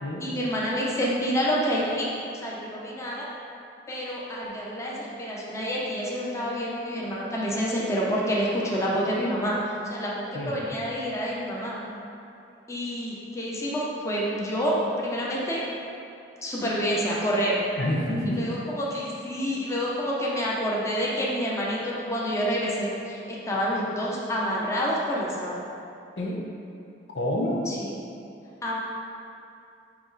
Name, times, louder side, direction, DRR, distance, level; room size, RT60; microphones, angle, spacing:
voice 1, 0.2-3.3 3.9-11.8 12.7-15.6 16.4-17.6 18.3-25.6 27.7-27.9 28.6-28.8, equal, 15° left, -5 dB, 0.8 m, -28 dB
voice 2, 17.8-18.5 26.2-26.4 27.1-27.6, left 1 dB, 90° left, -2 dB, 1.0 m, -27 dB
9.0 x 3.0 x 4.0 m, 2.6 s
head